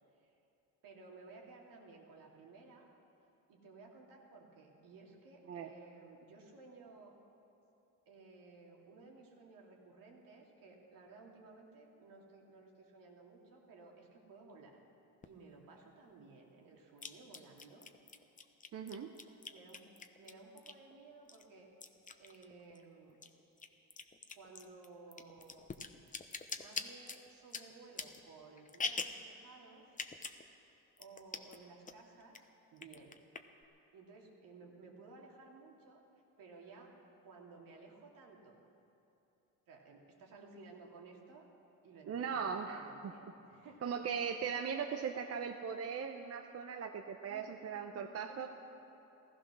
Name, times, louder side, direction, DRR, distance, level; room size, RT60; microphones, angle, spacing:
voice 1, 0.8-2.9 3.5-7.2 8.1-14.8 15.2-17.9 19.5-19.9 20.2-21.7 22.2-23.2 24.4-25.7 26.6-29.9 31.0-33.1 33.9-36.0 36.4-36.9 37.2-38.6 39.7-41.5 41.8-44.0 47.2-48.5, right 3 dB, 80° right, -1 dB, 2.7 m, -56 dB
sound 1, 15.2-15.3 17.0-20.9 21.3-22.8 23.1-29.3 29.9-30.4 30.7-30.8 31.0-31.6 31.9-32.4 32.8-33.6, left 4 dB, 25° left, 0.8 m, -44 dB
voice 2, 18.7-19.1 42.1-43.1 43.8-48.5, right 6 dB, 45° right, 5 dB, 0.8 m, -39 dB
15.5 x 14.5 x 6.2 m, 2.9 s
cardioid pair, 95°, 34 cm